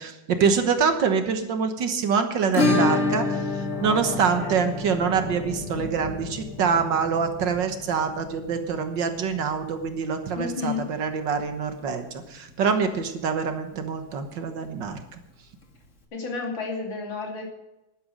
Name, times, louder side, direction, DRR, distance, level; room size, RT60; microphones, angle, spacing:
voice 1, 0.0-3.4 3.8-15.2, right 6 dB, 70° right, 7 dB, 1.9 m, -25 dB
Acoustic guitar / Strum, 2.5-11.1 11.4-11.5 11.8-11.9 12.3-12.4 14.4-14.5 15.6-15.7, left 3 dB, 40° left, 2.0 m, -29 dB
Thunder, 3.7-10.8, equal, 20° right, 1.7 m, -41 dB
voice 2, 10.4-10.9 16.1-17.4, left 4 dB, 80° left, 0 dB, 3.5 m, -31 dB
11.5 x 10.5 x 6.4 m, 0.92 s
omnidirectional pair, 2.1 m